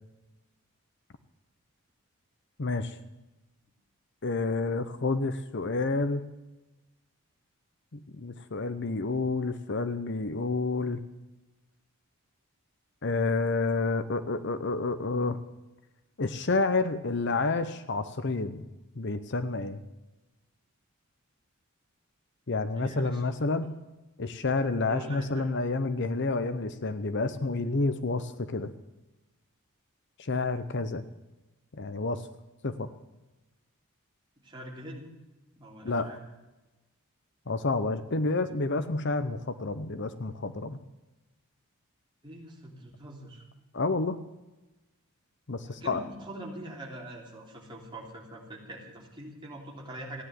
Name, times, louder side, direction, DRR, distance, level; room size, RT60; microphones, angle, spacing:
voice 1, 2.6-3.0 4.2-6.2 7.9-11.0 13.0-15.4 16.2-18.7 19.0-19.8 22.5-23.7 24.2-28.7 30.2-31.0 31.7-32.2 32.6-32.9 35.8-36.1 37.5-40.8 43.7-44.2 45.5-46.0, left 3 dB, 50° left, 12 dB, 0.8 m, -29 dB
voice 2, 22.7-23.2 24.8-25.5 34.4-35.1 35.6-36.2 42.2-43.4 45.7-50.2, right 1 dB, 20° right, -2 dB, 3.4 m, -43 dB
15.5 x 10.0 x 7.6 m, 1.1 s
head